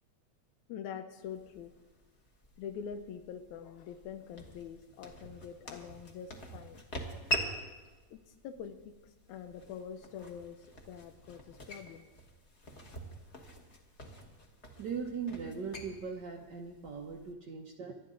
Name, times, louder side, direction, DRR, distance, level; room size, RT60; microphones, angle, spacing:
voice 1, 0.7-1.7 2.6-6.8 8.1-12.1, left 7 dB, 85° left, 7 dB, 2.1 m, -45 dB
sound 1, 1.2-17.3, right 1 dB, 35° left, 1.3 m, -44 dB
voice 2, 14.8-17.9, right 5 dB, 75° right, 0 dB, 0.9 m, -39 dB
24.5 x 11.5 x 3.9 m, 1.2 s
omnidirectional pair, 3.3 m